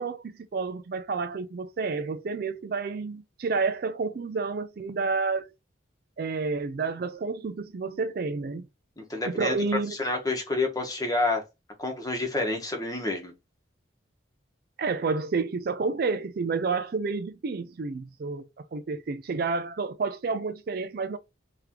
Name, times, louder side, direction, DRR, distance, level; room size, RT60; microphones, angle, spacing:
voice 1, 0.0-5.5 6.2-8.7 9.3-10.0 14.8-21.2, right 4 dB, 50° right, 0.4 m, -30 dB
voice 2, 9.0-9.5 10.0-11.4 11.8-13.3, left 2 dB, 20° left, 1.1 m, -28 dB
3.6 x 3.3 x 2.9 m
head